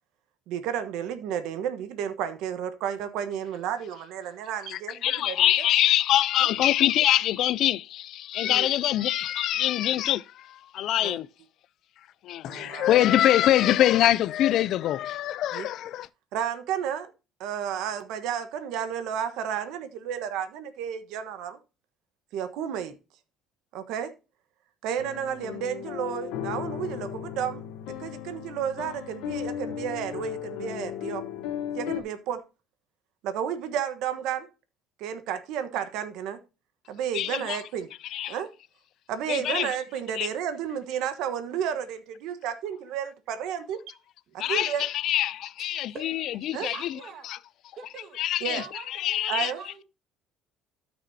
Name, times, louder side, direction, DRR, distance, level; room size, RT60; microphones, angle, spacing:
voice 1, 0.5-5.4 8.5-8.7 11.0-11.2 12.4-12.9 15.5-15.7 16.3-17.1 17.4-21.6 22.3-22.9 23.7-24.1 24.8-27.7 28.0-31.2 31.7-32.4 33.2-34.5 35.0-36.4 36.9-37.9 38.3-38.5 39.1-43.9 44.3-44.8 46.5-46.7 48.4-48.6 49.3-49.6, right 9 dB, 70° right, 1.2 m, -32 dB
voice 2, 4.7-11.3 12.2-16.1 37.1-37.6 38.1-38.3 39.3-39.8 40.1-40.3 44.4-46.9 47.3-47.4 48.2-49.5, left 12 dB, 55° left, 0.4 m, -24 dB
sound 1, 25.0-32.0, left 10 dB, 85° left, 1.2 m, -35 dB
voice 3, 45.9-47.3 47.8-48.2 48.5-49.8, right 6 dB, 50° right, 1.6 m, -45 dB
13.0 x 6.1 x 2.8 m
cardioid pair, 145°, 0 cm